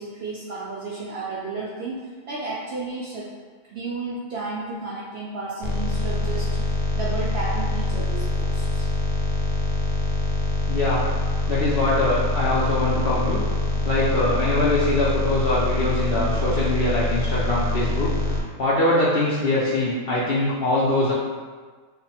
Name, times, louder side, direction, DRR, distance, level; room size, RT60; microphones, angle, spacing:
voice 1, 0.0-2.0 2.3-3.3 3.6-6.6 6.9-8.9, right 3 dB, 70° right, -6 dB, 0.6 m, -32 dB
sound 1, 5.6-18.4, left 2 dB, 90° left, 1.1 m, -24 dB
voice 2, 10.7-11.1 11.5-13.4 13.8-21.1, left 1 dB, 65° left, -7 dB, 0.6 m, -23 dB
3.5 x 2.1 x 4.2 m, 1.5 s
omnidirectional pair, 1.6 m